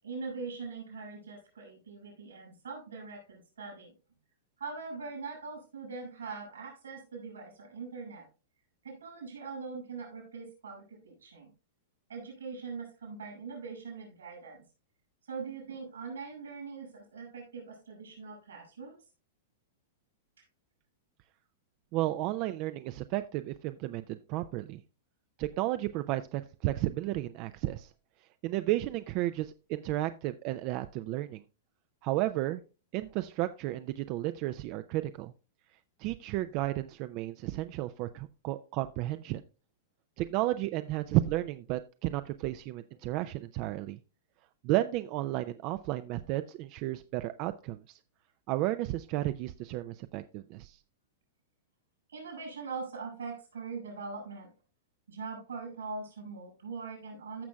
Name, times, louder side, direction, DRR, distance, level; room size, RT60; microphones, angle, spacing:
voice 1, 0.0-3.9 4.6-8.3 8.8-11.5 12.1-14.6 15.2-19.0 52.1-54.5 55.1-57.4, right 4 dB, 85° right, 2 dB, 5.7 m, -42 dB
voice 2, 21.9-24.8 25.4-27.9 28.4-31.4 32.0-32.6 32.9-35.3 36.0-39.4 40.2-44.0 44.6-48.0 48.5-50.8, right 16 dB, 45° right, 11 dB, 0.4 m, -33 dB
14.5 x 6.1 x 2.3 m, 0.33 s
hypercardioid pair, 115°, 0 cm